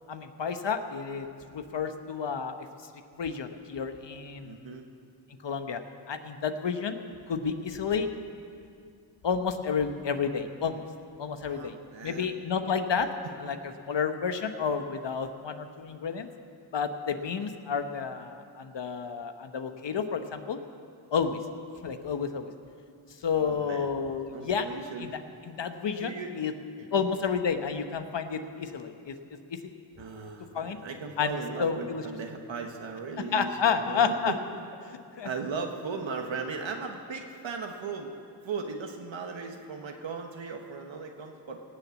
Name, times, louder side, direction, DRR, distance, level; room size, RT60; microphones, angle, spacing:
voice 1, 0.1-2.5 3.2-4.7 5.4-5.8 6.1-7.0 7.3-8.1 9.2-10.8 11.2-11.7 12.0-13.1 13.4-16.3 16.7-20.6 21.1-21.4 21.8-22.5 23.2-24.7 25.0-25.1 25.5-26.5 26.9-29.1 29.5-29.6 30.5-30.8 31.2-32.0 33.3-34.3 34.9-35.3, left 6 dB, 65° left, 8 dB, 1.2 m, -30 dB
voice 2, 4.4-4.9 11.4-12.3 13.2-13.5 23.3-23.9 24.3-25.1 26.0-26.3 26.9-27.0 30.0-34.4 35.2-38.1 38.4-41.6, right 5 dB, 70° right, 3 dB, 1.3 m, -37 dB
18.0 x 7.1 x 8.2 m, 2.4 s
cardioid pair, 45°, 47 cm